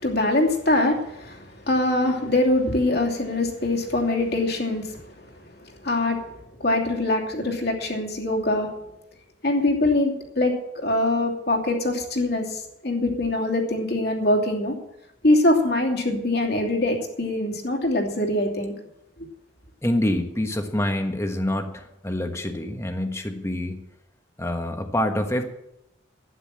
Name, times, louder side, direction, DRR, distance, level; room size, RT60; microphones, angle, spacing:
voice 1, 0.0-5.2 5.6-6.2 6.6-8.7 9.4-14.7 15.2-18.7, left 1 dB, 55° left, 1 dB, 2.7 m, -23 dB
voice 2, 19.8-23.8 24.4-25.5, left 1 dB, 15° left, 5 dB, 1.4 m, -26 dB
12.0 x 9.7 x 7.5 m, 0.83 s
head